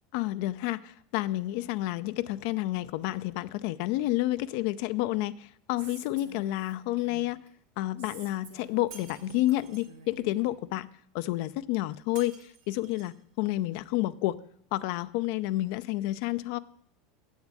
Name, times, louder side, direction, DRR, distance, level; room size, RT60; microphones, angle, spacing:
voice 1, 0.1-7.4 7.8-10.9 11.1-12.3 12.7-14.4 14.7-16.6, left 16 dB, 60° left, 14 dB, 0.4 m, -30 dB
Female speech woman speaking, 5.8-7.5 8.0-10.5, right 5 dB, 85° right, 1.7 m, -50 dB
Shatter, 8.9-9.9 12.2-13.2, right 6 dB, 65° right, 2.2 m, -51 dB
8.0 x 7.2 x 7.5 m, 0.69 s
hypercardioid pair, 80°, 0 cm